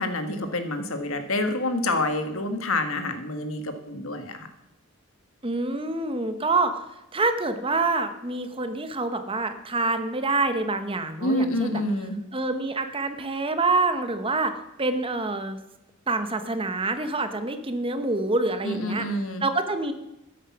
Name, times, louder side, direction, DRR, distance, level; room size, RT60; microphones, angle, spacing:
voice 1, 0.0-4.5 11.2-12.2 18.6-19.4, left 1 dB, 70° left, 7 dB, 1.7 m, -27 dB
voice 2, 5.4-6.8 7.1-11.8 12.3-14.5 14.8-15.6 16.1-19.1 19.4-19.9, right 3 dB, 25° right, 9 dB, 1.0 m, -26 dB
13.0 x 10.5 x 6.0 m, 0.94 s
head